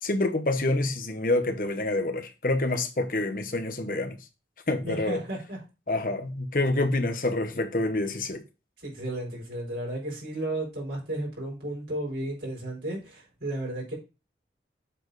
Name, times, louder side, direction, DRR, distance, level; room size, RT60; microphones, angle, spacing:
voice 1, 0.0-4.2 4.7-5.2 5.9-8.4, left 2 dB, 50° left, 1.0 m, -27 dB
voice 2, 4.8-5.6 7.5-7.6 8.8-13.9, right 1 dB, 85° right, 4.4 m, -33 dB
7.7 x 4.3 x 3.9 m
head